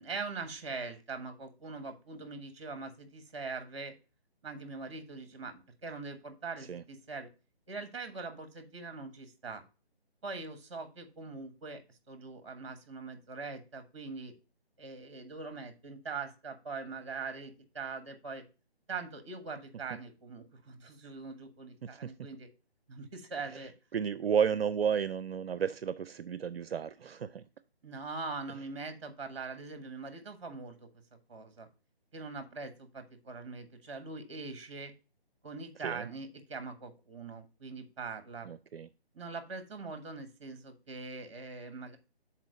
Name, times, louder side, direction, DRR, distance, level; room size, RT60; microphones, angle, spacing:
voice 1, 0.0-3.9 4.4-7.3 7.7-9.6 10.2-11.8 12.1-14.3 14.8-18.4 18.9-22.5 22.9-23.7 27.8-30.9 31.3-31.7 32.1-34.9 35.4-38.5 39.1-42.0, right 4 dB, 30° right, 9 dB, 1.2 m, -42 dB
voice 2, 21.8-22.1 23.5-23.6 23.9-27.5 35.8-36.1 38.4-38.9, right 7 dB, 70° right, 15 dB, 0.5 m, -32 dB
6.0 x 4.4 x 5.2 m, 0.32 s
figure-of-eight pair, 165°, 32 cm